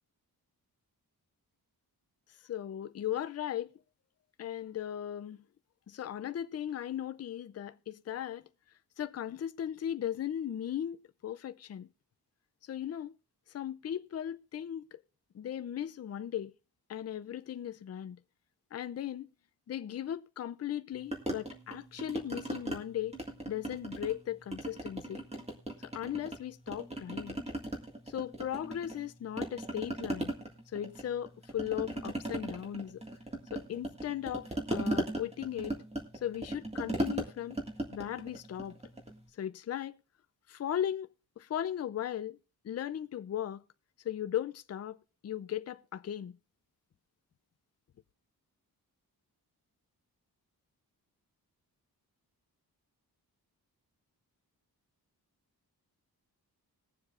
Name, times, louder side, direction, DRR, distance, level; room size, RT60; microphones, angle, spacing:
voice 1, 2.4-3.7 4.4-5.4 5.9-8.5 9.0-11.9 12.6-13.2 13.5-15.0 15.3-16.5 16.9-18.2 18.7-19.3 19.7-23.2 23.5-25.2 25.8-27.4 28.1-30.3 30.7-33.0 33.5-35.8 36.1-37.6 37.9-38.8 39.3-40.0 40.5-41.1 41.4-42.4 42.6-43.6 44.0-45.0 45.2-46.4, left 10 dB, 45° left, 0.5 m, -37 dB
sound 1, 21.1-22.8 23.1-24.2 24.5-26.4 26.7-29.1 29.4-39.2, right 1 dB, 15° right, 1.8 m, -37 dB
21.0 x 7.2 x 2.4 m
wide cardioid pair, 155°, 38 cm